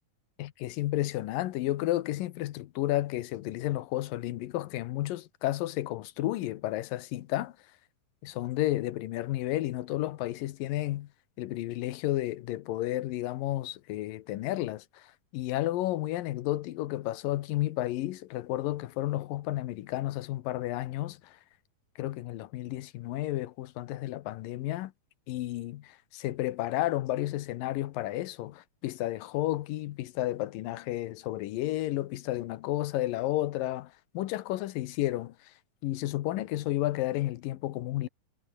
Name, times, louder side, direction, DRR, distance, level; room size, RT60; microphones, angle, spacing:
voice 1, 0.4-7.5 8.2-11.1 11.4-21.4 22.0-24.9 25.3-35.3 35.8-38.1, left 15 dB, 75° left, 2.5 m, -32 dB
omnidirectional pair, 4.2 m